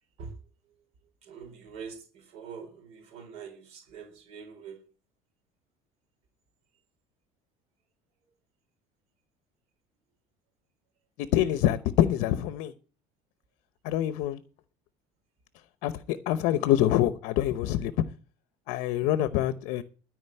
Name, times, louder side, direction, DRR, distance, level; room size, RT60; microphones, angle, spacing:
voice 1, 1.2-4.8, right 6 dB, 50° right, 4.3 m, -44 dB
voice 2, 11.3-12.7 13.8-14.4 15.8-17.9 18.7-19.8, left 12 dB, 60° left, 0.9 m, -25 dB
13.5 x 5.1 x 9.1 m
cardioid pair, 180°, 14 cm